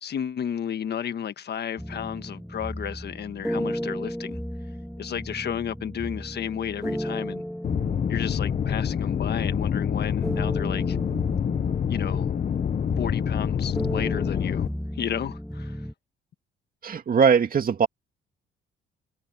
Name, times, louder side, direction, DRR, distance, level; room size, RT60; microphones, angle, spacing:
voice 1, 0.0-4.4 5.0-7.4 8.1-11.0 11.9-12.3 13.0-14.7 15.0-15.9, left 8 dB, 55° left, 1.4 m, -32 dB
sound 1, 1.8-15.9, equal, ahead, 1.6 m, -35 dB
sound 2, 7.6-14.7, left 8 dB, 40° left, 0.7 m, -26 dB
voice 2, 16.8-17.9, right 6 dB, 45° right, 2.4 m, -20 dB
cardioid pair, 90°, 20 cm